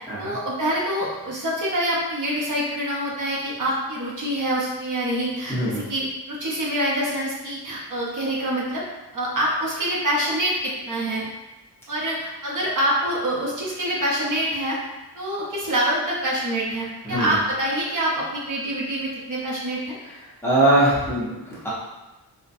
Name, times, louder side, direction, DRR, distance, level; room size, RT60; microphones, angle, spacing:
voice 1, 0.2-8.8 9.1-11.3 11.9-14.8 15.1-19.9, right 1 dB, 50° right, -5 dB, 0.6 m, -26 dB
voice 2, 5.5-5.8 17.0-17.4 20.4-21.7, right 1 dB, 5° left, -10 dB, 0.8 m, -21 dB
3.9 x 2.1 x 2.6 m, 1.1 s
wide cardioid pair, 175°, 40 cm